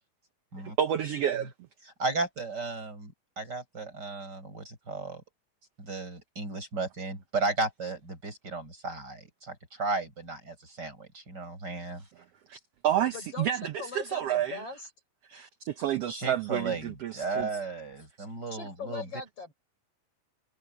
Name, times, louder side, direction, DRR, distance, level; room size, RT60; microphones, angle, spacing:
voice 1, 0.8-1.5 12.5-14.6 15.3-17.5, right 10 dB, 70° right, 1.6 m, -30 dB
voice 2, 2.0-5.2 5.8-12.0 16.1-19.1, right 3 dB, 30° right, 7.5 m, -34 dB
voice 3, 13.0-13.5 13.8-14.9 18.5-19.5, left 4 dB, 50° left, 6.7 m, -40 dB
omnidirectional pair, 3.5 m